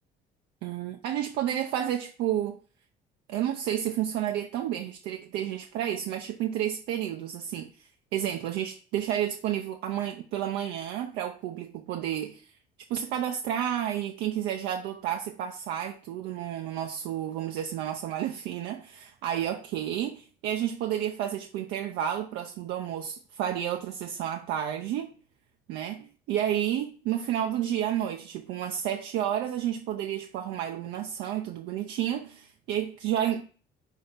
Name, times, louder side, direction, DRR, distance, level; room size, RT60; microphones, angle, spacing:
voice 1, 0.6-2.6 3.3-12.5 12.9-25.1 25.7-33.5, right 10 dB, 90° right, 0.7 m, -31 dB
5.5 x 4.4 x 5.6 m
cardioid pair, 110°, 17 cm